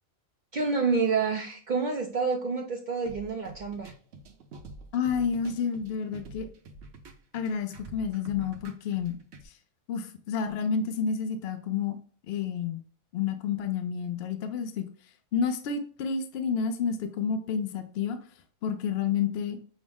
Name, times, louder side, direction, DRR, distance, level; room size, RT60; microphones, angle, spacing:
voice 1, 0.5-3.9, right 4 dB, 80° right, 2 dB, 0.4 m, -28 dB
sound 1, 3.1-9.5, right 2 dB, 60° right, 0.8 m, -47 dB
voice 2, 4.9-6.5 7.3-9.2 9.4-9.5 9.9-12.0 12.3-12.8 13.1-14.9 15.3-18.2 18.6-19.6, left 6 dB, 60° left, 8 dB, 0.7 m, -30 dB
6.1 x 2.0 x 3.4 m, 0.44 s
omnidirectional pair, 1.5 m